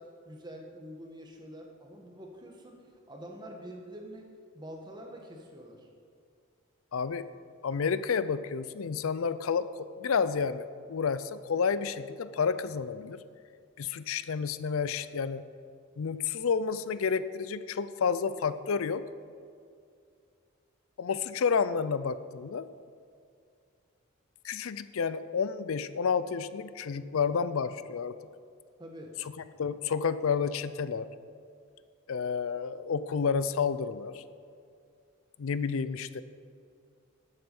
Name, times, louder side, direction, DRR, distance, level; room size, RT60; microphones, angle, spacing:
voice 1, 0.0-4.3 4.5-5.9 28.8-29.1, equal, 20° right, 1 dB, 1.3 m, -46 dB
voice 2, 6.9-7.3 7.6-13.2 13.8-15.4 16.0-19.0 21.0-22.7 24.4-28.2 29.6-31.1 32.1-34.2 35.4-36.2, left 6 dB, 75° left, 14 dB, 0.5 m, -30 dB
11.5 x 7.8 x 5.3 m, 2.3 s
head